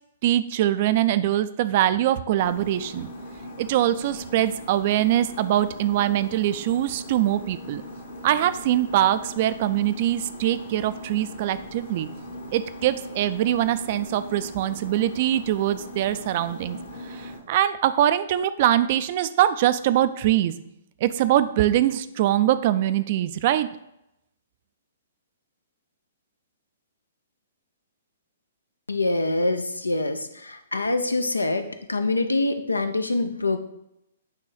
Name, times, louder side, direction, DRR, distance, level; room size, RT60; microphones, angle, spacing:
voice 1, 0.2-3.1 3.6-7.8 8.2-12.1 12.5-16.8 17.0-20.5 21.0-23.7, right 12 dB, 40° right, 13 dB, 0.4 m, -23 dB
sound 1, 2.4-17.4, left 1 dB, 55° left, 1.3 m, -40 dB
voice 2, 28.9-33.6, left 2 dB, 80° left, 9 dB, 0.6 m, -25 dB
8.5 x 3.0 x 4.9 m, 0.82 s
figure-of-eight pair, 120°, 0 cm